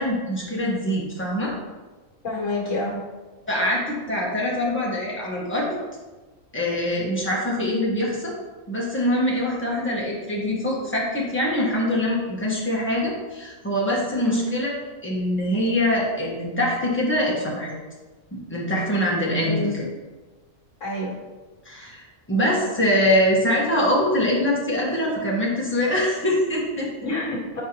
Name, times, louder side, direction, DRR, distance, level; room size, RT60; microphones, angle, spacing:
voice 1, 0.0-1.5 3.5-5.7 6.5-8.3 8.7-14.7 15.0-17.7 18.3-19.8 21.6-27.1, left 1 dB, 10° left, -5 dB, 1.4 m, -24 dB
voice 2, 2.2-3.0 14.2-14.5 19.4-19.8 20.8-21.1 27.0-27.6, left 1 dB, 65° left, -4 dB, 2.1 m, -27 dB
7.9 x 4.7 x 3.0 m, 1.3 s
omnidirectional pair, 1.4 m